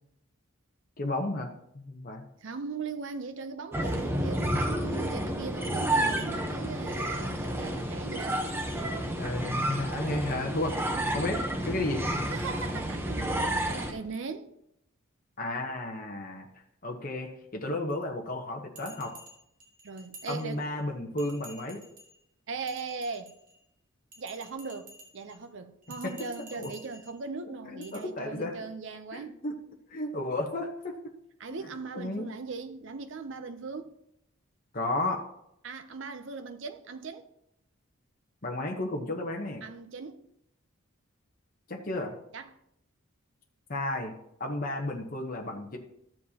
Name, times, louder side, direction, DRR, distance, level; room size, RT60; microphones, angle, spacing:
voice 1, 1.0-1.5 1.7-2.2 9.2-10.8 11.1-12.0 15.4-16.5 16.8-19.1 20.3-21.8 26.0-26.2 26.6-26.7 27.7-28.6 29.1-29.5 29.9-30.9 31.5-31.6 32.0-32.2 34.7-35.2 38.4-39.6 41.7-42.1 43.7-44.1 44.4-45.8, left 2 dB, 40° left, 1.0 m, -33 dB
voice 2, 2.4-8.4 12.2-14.5 19.8-20.7 22.5-23.3 24.2-29.4 31.4-34.0 35.6-37.3 39.6-40.3 42.3-42.5, right 4 dB, 60° right, 0.6 m, -39 dB
sound 1, 3.7-13.9, right 1 dB, 10° right, 0.8 m, -30 dB
Bell, 18.8-20.8 21.2-22.2 22.6-23.6 24.1-25.4 25.8-27.2 27.8-28.0, right 1 dB, 40° right, 1.9 m, -51 dB
13.5 x 7.4 x 2.8 m
head